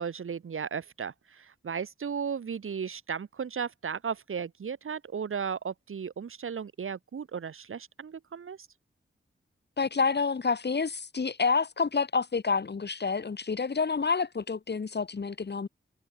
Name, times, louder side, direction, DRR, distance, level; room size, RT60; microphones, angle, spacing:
voice 1, 0.0-8.7, right 6 dB, 75° right, 3.6 m, -35 dB
voice 2, 9.8-15.7, left 5 dB, 55° left, 4.3 m, -28 dB
wide cardioid pair, 85°, 21 cm